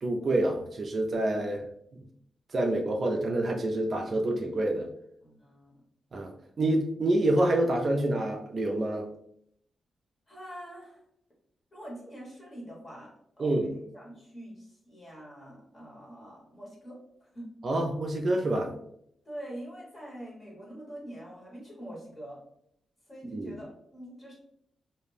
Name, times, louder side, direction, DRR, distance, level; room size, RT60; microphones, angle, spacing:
voice 1, 0.0-1.7 1.9-2.1 2.5-4.9 6.1-6.3 6.6-9.1 13.4-13.7 17.6-18.7 23.3-23.6, right 1 dB, 40° right, 2 dB, 0.3 m, -27 dB
voice 2, 5.2-5.8 10.3-11.0 11.7-17.5 19.2-22.4 23.1-24.3, equal, 25° left, -4 dB, 1.1 m, -44 dB
2.4 x 2.1 x 3.1 m, 0.71 s
wide cardioid pair, 140°, 0 cm